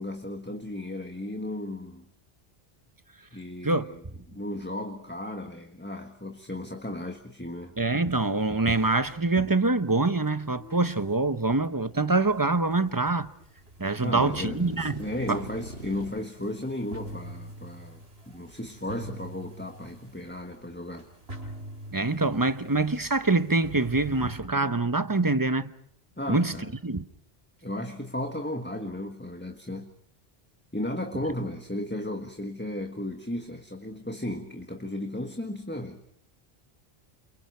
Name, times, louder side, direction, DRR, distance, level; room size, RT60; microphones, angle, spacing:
voice 1, 0.0-2.1 3.3-4.0 4.3-7.7 14.0-21.1 26.2-26.7 27.6-29.9 30.7-36.0, left 1 dB, 10° left, 1.6 m, -35 dB
voice 2, 7.8-13.3 13.8-15.4 21.9-25.7 26.3-26.5 26.8-27.0, right 3 dB, 20° right, 1.0 m, -25 dB
sound 1, 7.9-24.4, right 1 dB, 75° right, 5.2 m, -47 dB
sound 2, 14.2-16.1, equal, 90° left, 8.0 m, -40 dB
29.0 x 28.5 x 4.6 m
omnidirectional pair, 1.0 m